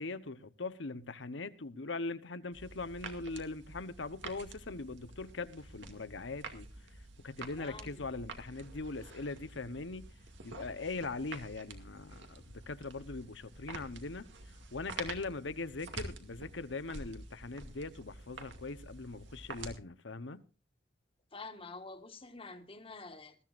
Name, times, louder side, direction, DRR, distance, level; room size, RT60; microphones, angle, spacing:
voice 1, 0.0-6.7 7.2-10.1 10.4-20.4, left 3 dB, 90° left, 1.0 m, -41 dB
sound 1, 2.5-19.8, right 3 dB, 80° right, 2.3 m, -48 dB
voice 2, 7.6-8.1 21.3-23.4, left 3 dB, 30° left, 1.6 m, -48 dB
21.0 x 14.0 x 2.5 m
head